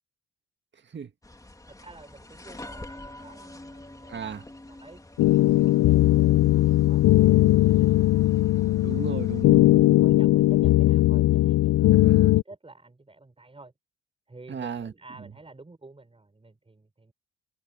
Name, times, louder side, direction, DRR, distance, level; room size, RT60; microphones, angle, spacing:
sound 1, 1.2-9.4, left 1 dB, 10° left, 2.7 m, -46 dB
voice 1, 1.7-8.9 10.0-13.7 14.3-17.1, right 2 dB, 20° right, 6.3 m, -51 dB
voice 2, 4.1-4.4 8.8-10.0 11.9-12.3 14.5-14.9, right 6 dB, 35° right, 1.9 m, -35 dB
sound 2, 5.2-12.4, left 16 dB, 65° left, 0.5 m, -19 dB
cardioid pair, 90°, 30 cm